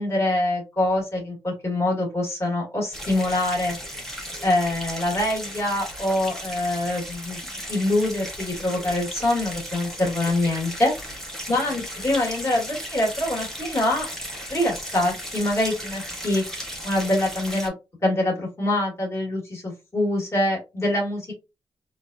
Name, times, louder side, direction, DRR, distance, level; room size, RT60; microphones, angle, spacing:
voice 1, 0.0-3.8 4.4-7.4 7.7-10.9 11.5-14.1 14.5-16.4 16.8-17.7 18.0-21.3, left 1 dB, 30° left, -3 dB, 1.6 m, -24 dB
sound 1, 2.9-17.7, equal, 5° left, 1.0 m, -36 dB
3.9 x 2.3 x 2.6 m, 0.26 s
wide cardioid pair, 120°, 10 cm